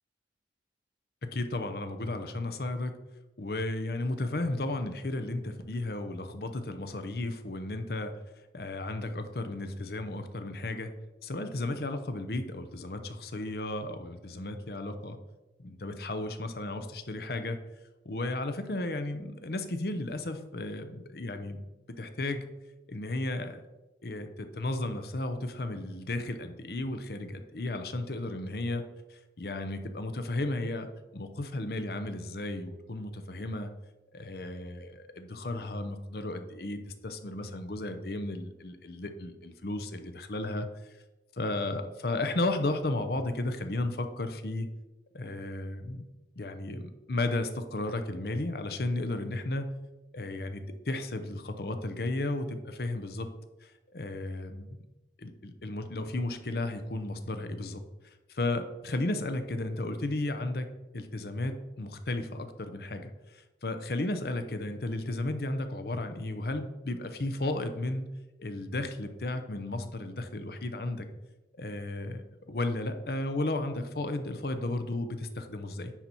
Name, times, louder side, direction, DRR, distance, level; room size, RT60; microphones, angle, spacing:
voice 1, 1.2-2.9 3.4-8.1 8.5-10.9 11.2-15.2 15.6-17.6 18.0-21.6 22.0-22.4 22.9-23.6 24.0-28.8 29.1-30.9 31.1-33.7 34.1-40.7 41.4-44.7 45.1-46.0 46.4-49.7 50.1-53.3 53.6-54.8 55.2-57.8 58.3-60.7 60.9-68.1 68.4-71.1 71.6-75.9, left 2 dB, 55° left, 8 dB, 0.7 m, -34 dB
10.0 x 4.1 x 4.4 m, 1.1 s
head